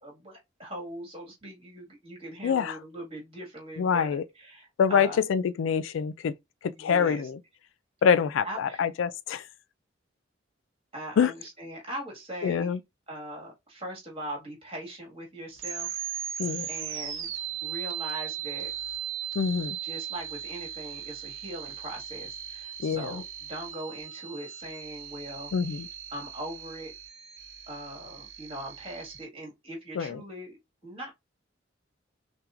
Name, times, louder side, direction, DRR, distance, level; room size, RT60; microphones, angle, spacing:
voice 1, 0.0-5.2 6.8-7.2 8.4-8.8 10.9-12.7 13.1-15.9 16.7-17.3 17.6-18.7 19.8-25.8 26.1-26.9 27.7-30.6 30.8-31.1, right 1 dB, 30° right, 1.8 m, -40 dB
voice 2, 2.4-2.8 3.8-4.2 4.8-6.3 6.6-7.4 8.0-9.5 11.2-11.3 12.4-12.8 16.4-16.7 19.4-19.8 22.8-23.2 25.5-25.9 30.0-30.2, left 7 dB, 75° left, 0.3 m, -25 dB
sound 1, 15.6-29.2, right 10 dB, 85° right, 0.8 m, -38 dB
5.7 x 2.3 x 2.5 m
head